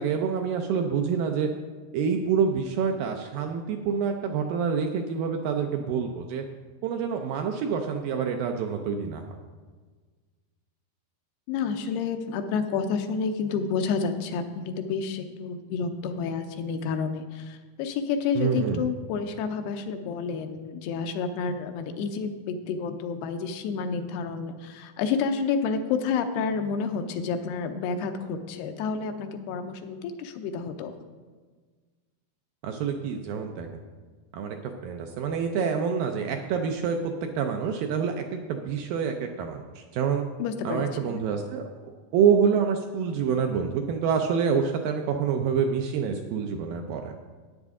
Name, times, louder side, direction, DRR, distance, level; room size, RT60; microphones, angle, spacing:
voice 1, 0.0-1.5 1.9-6.4 6.8-9.2 18.4-18.9 32.6-33.8 34.3-40.3 40.6-47.2, right 6 dB, 80° right, 4 dB, 2.1 m, -27 dB
voice 2, 11.5-30.9 40.4-41.2, left 5 dB, 85° left, 7 dB, 2.8 m, -30 dB
13.5 x 9.4 x 3.7 m, 1.4 s
omnidirectional pair, 4.6 m